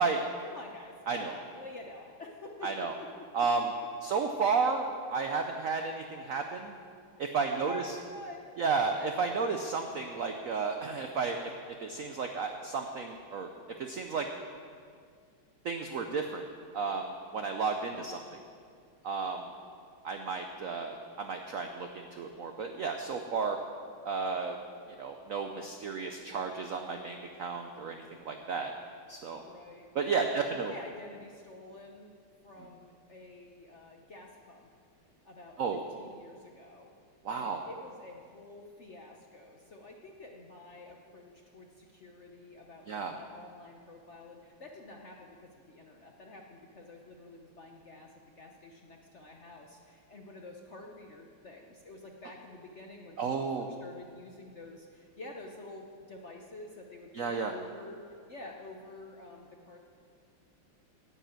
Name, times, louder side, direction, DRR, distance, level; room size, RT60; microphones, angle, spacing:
voice 1, 0.0-3.3 7.4-8.5 19.2-19.3 29.4-29.9 30.1-32.1 32.4-34.7 35.2-36.9 37.3-53.2 53.6-59.8, left 2 dB, 55° left, 1 dB, 0.8 m, -48 dB
voice 2, 2.6-2.9 3.3-3.7 4.0-6.7 7.2-7.8 8.6-11.5 11.8-13.5 13.8-14.3 15.6-16.4 16.7-18.2 19.0-19.5 20.0-23.6 24.0-24.6 24.9-28.7 29.1-29.4 29.9-30.7 35.6-35.8 37.2-37.6 42.9-43.2 53.2-53.7 57.1-57.5, right 5 dB, 80° right, 5 dB, 0.7 m, -32 dB
9.8 x 8.3 x 8.9 m, 2.2 s
omnidirectional pair, 2.3 m